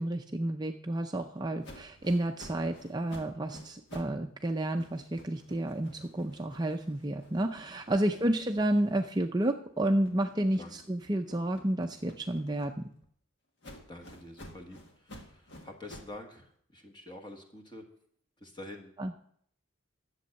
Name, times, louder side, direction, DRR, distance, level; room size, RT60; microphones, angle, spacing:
voice 1, 0.0-12.9 19.0-19.1, right 1 dB, 20° right, 5 dB, 0.5 m, -31 dB
sound 1, 1.6-4.2 4.5-9.3 9.7-13.1 13.6-16.2, equal, 55° left, 1.7 m, -52 dB
voice 2, 13.9-17.9 18.4-18.9, left 1 dB, 20° left, 4 dB, 1.5 m, -47 dB
11.5 x 7.8 x 6.4 m, 0.65 s
head